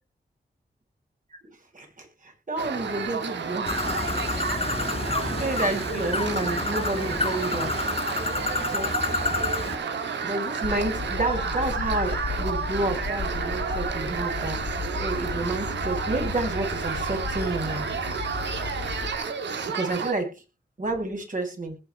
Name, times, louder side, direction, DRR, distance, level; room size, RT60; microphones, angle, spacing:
voice 1, 1.7-3.7 5.2-7.9 8.7-8.9 10.2-14.6 15.0-17.8 19.7-20.4 20.8-21.8, right 2 dB, 45° right, 2 dB, 7.7 m, -30 dB
sound 1, 2.6-20.1, right 6 dB, 85° right, 2.1 m, -31 dB
Bird, 3.7-9.8, left 3 dB, 35° left, 2.6 m, -29 dB
Bell / Train, 10.6-19.2, left 4 dB, 75° left, 2.6 m, -34 dB
21.0 x 7.3 x 3.5 m, 0.29 s
cardioid pair, 50°, 18 cm